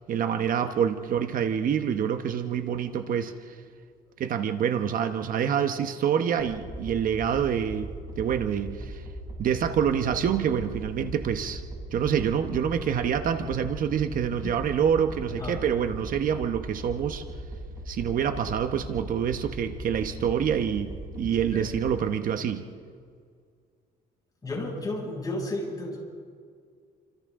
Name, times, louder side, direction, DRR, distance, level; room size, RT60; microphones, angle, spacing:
voice 1, 0.1-3.5 4.2-9.0 9.4-11.6 11.9-17.2 17.9-22.6, right 8 dB, 55° right, 8 dB, 1.1 m, -27 dB
sound 1, 6.4-21.9, right 1 dB, 20° right, 7.0 m, -39 dB
voice 2, 15.3-15.6 21.5-21.7 24.4-26.0, left 2 dB, 20° left, -2 dB, 7.1 m, -33 dB
29.0 x 25.5 x 3.8 m, 2.1 s
cardioid pair, 110°, 17 cm